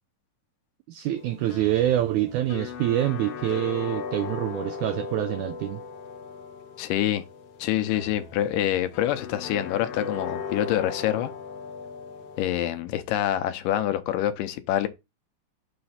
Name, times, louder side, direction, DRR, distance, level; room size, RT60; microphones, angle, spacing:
voice 1, 0.9-5.8, right 13 dB, 80° right, 1.8 m, -26 dB
sound 1, 1.1-12.7, left 6 dB, 65° left, 1.5 m, -38 dB
voice 2, 6.8-7.2 7.6-11.3 12.4-14.9, left 12 dB, 90° left, 2.3 m, -26 dB
7.0 x 3.2 x 5.6 m
omnidirectional pair, 3.9 m